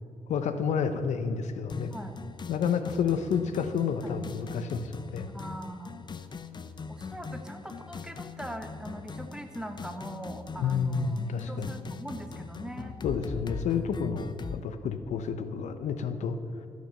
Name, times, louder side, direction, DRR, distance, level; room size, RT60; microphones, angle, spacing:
voice 1, 0.3-1.9 2.5-5.3 10.6-11.8 13.0-16.7, left 6 dB, 80° left, 10 dB, 0.7 m, -30 dB
sound 1, 1.7-14.6, left 5 dB, 40° left, 0.6 m, -41 dB
voice 2, 5.3-6.0 6.9-13.0, right 1 dB, 5° right, 6 dB, 1.2 m, -41 dB
14.0 x 6.3 x 6.6 m, 2.5 s
cardioid pair, 75°, 12 cm